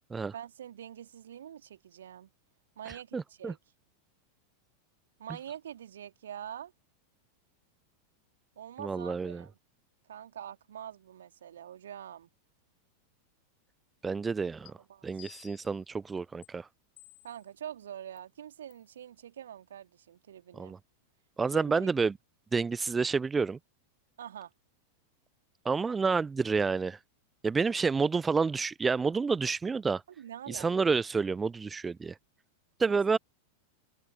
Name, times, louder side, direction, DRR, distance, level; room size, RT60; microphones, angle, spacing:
voice 1, 0.3-2.3 2.8-3.6 5.2-6.7 8.6-9.6 10.1-12.3 14.6-15.3 17.2-20.8 21.5-21.9 24.2-24.5 30.2-30.7 32.8-33.0, right 10 dB, 65° right, 2.9 m, -45 dB
voice 2, 3.1-3.5 8.8-9.4 14.0-14.7 15.0-16.7 20.5-20.8 21.4-22.1 22.5-23.6 25.6-27.0 27.4-30.0 30.5-32.1 32.8-33.2, right 4 dB, 15° right, 0.6 m, -29 dB
sound 1, 14.7-14.8 15.2-15.8 16.4-16.5 17.0-17.5 18.2-18.3 18.7-18.9, left 23 dB, 40° left, 4.4 m, -54 dB
figure-of-eight pair, 90°, 0 cm